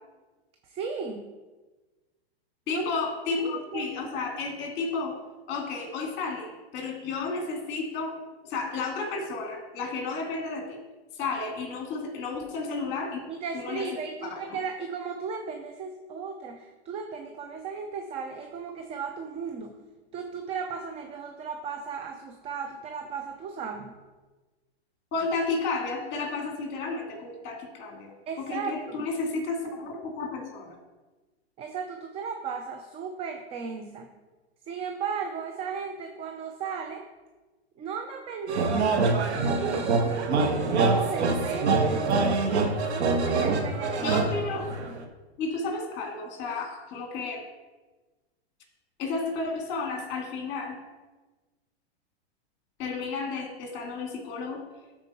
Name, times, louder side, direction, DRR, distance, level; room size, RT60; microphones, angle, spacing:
voice 1, 0.6-1.3 2.7-3.0 3.4-3.9 13.3-19.8 20.1-24.0 28.3-29.1 31.6-34.1 34.7-37.0 37.8-40.3 40.6-42.4 42.9-44.2, right 5 dB, 20° right, 5 dB, 0.4 m, -36 dB
voice 2, 2.7-5.2 5.5-8.2 8.4-10.8 11.1-13.2 13.5-13.8 14.2-14.6 25.1-30.8 44.0-44.8 45.4-47.4 49.0-50.8 52.8-54.6, left 4 dB, 35° left, 2 dB, 2.2 m, -32 dB
sound 1, 38.5-45.0, right 3 dB, 80° right, 1.3 m, -25 dB
13.0 x 4.4 x 4.3 m, 1.2 s
hypercardioid pair, 130°, 33 cm